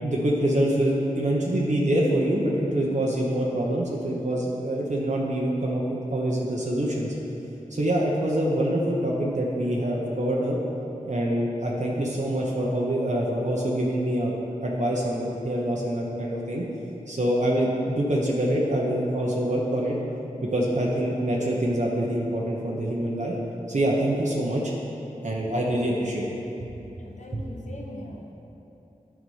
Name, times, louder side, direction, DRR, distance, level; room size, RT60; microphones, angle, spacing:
voice 1, 0.0-7.1 7.7-10.6 11.0-14.3 14.6-16.6 17.1-19.9 20.5-23.3 23.7-24.6 25.2-26.2 26.8-26.9 27.3-27.5, right 1 dB, 60° right, -4 dB, 1.0 m, -25 dB
voice 2, 27.0-28.3, left 1 dB, 60° left, 0 dB, 1.0 m, -41 dB
9.4 x 4.9 x 5.6 m, 2.9 s
wide cardioid pair, 50°, 14 cm